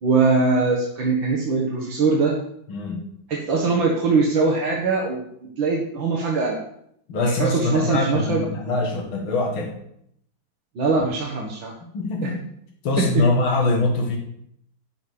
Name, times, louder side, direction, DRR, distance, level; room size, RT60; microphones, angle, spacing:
voice 1, 0.0-2.4 3.3-6.6 7.4-8.4 10.8-11.7 12.2-12.3 13.0-13.2, right 4 dB, 70° right, -3 dB, 2.3 m, -22 dB
voice 2, 2.7-3.1 7.1-9.8 11.9-12.4 12.8-14.2, left 2 dB, 80° left, 0 dB, 2.6 m, -23 dB
11.5 x 5.4 x 8.6 m, 0.73 s
omnidirectional pair, 2.2 m